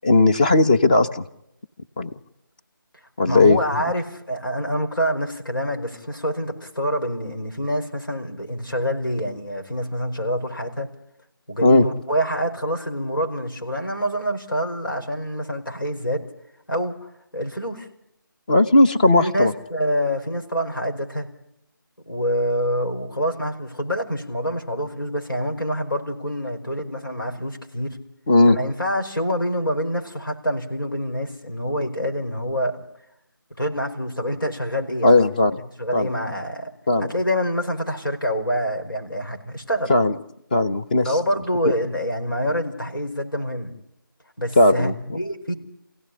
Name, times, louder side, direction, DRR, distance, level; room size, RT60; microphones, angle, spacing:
voice 1, 0.0-1.2 2.0-2.1 3.2-3.6 11.6-11.9 18.5-19.5 28.3-28.6 35.0-35.5 35.9-36.1 36.9-37.1 39.9-40.1 40.5-41.1 44.6-45.2, left 2 dB, 25° left, 6 dB, 1.1 m, -16 dB
voice 2, 3.2-10.9 11.5-16.2 16.7-17.9 19.2-21.3 22.1-28.0 28.5-32.8 33.6-35.2 35.5-35.6 35.8-36.7 37.0-39.9 41.0-43.7 44.4-45.5, equal, 75° left, 3 dB, 5.2 m, -26 dB
27.5 x 16.5 x 10.0 m, 0.83 s
figure-of-eight pair, 160°, 11 cm